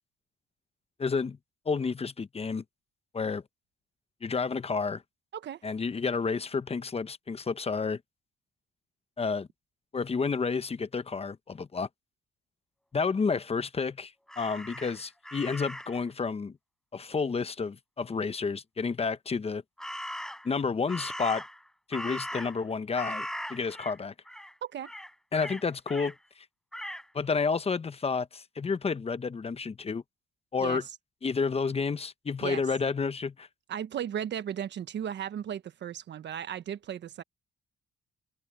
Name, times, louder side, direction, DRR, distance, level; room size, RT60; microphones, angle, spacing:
voice 1, 1.0-1.4 1.7-2.6 3.1-3.4 4.2-5.0 5.6-8.0 9.2-9.5 9.9-11.9 12.9-16.6 16.9-19.6 20.4-21.4 21.9-24.1 25.3-26.1 27.1-30.0 30.5-30.8 31.2-33.5, left 5 dB, 30° left, 1.0 m, -30 dB
Crow, 14.3-16.0 19.8-20.5 20.9-22.7 22.9-24.0 24.3-24.5 24.8-26.1 26.7-27.1, equal, 5° left, 5.5 m, -39 dB
voice 2, 33.7-37.2, right 9 dB, 65° right, 1.3 m, -35 dB
cardioid pair, 90°, 20 cm